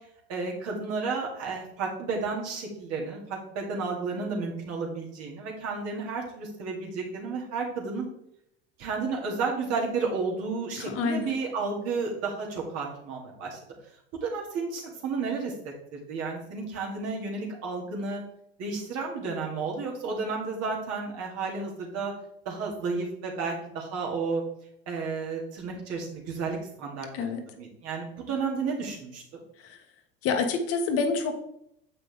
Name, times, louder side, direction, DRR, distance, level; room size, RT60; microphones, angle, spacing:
voice 1, 0.3-8.1 8.8-13.6 14.2-15.5 15.9-18.2 18.6-22.1 22.4-24.4 24.9-27.1 27.6-29.2, right 4 dB, 55° right, -1 dB, 2.6 m, -32 dB
voice 2, 10.8-11.3 27.1-27.4 29.6-29.8 30.2-31.3, left 4 dB, 50° left, 5 dB, 1.3 m, -28 dB
7.2 x 5.6 x 3.6 m, 0.77 s
hypercardioid pair, 85°, 29 cm